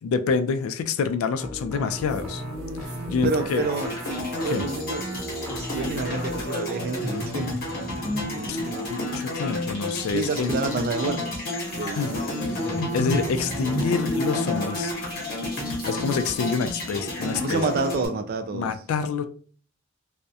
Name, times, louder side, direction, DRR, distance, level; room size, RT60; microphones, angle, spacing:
voice 1, 0.0-2.4 2.8-3.6 4.5-4.6 8.5-8.6 8.9-10.5 12.0-12.1 12.5-12.7 12.9-14.9 15.9-17.6 18.5-19.2, left 5 dB, 85° left, 0.3 m, -27 dB
sound 1, 1.4-6.5, left 1 dB, ahead, 0.7 m, -37 dB
sound 2, 2.0-7.5 9.5-9.6 11.6-16.6, right 4 dB, 90° right, 0.6 m, -41 dB
voice 2, 3.2-3.9 4.4-5.0 5.5-7.6 8.2-8.8 10.1-12.3 17.4-18.7, right 4 dB, 45° right, 0.3 m, -29 dB
sound 3, 3.6-18.1, left 1 dB, 45° left, 0.9 m, -30 dB
2.3 x 2.0 x 2.7 m
head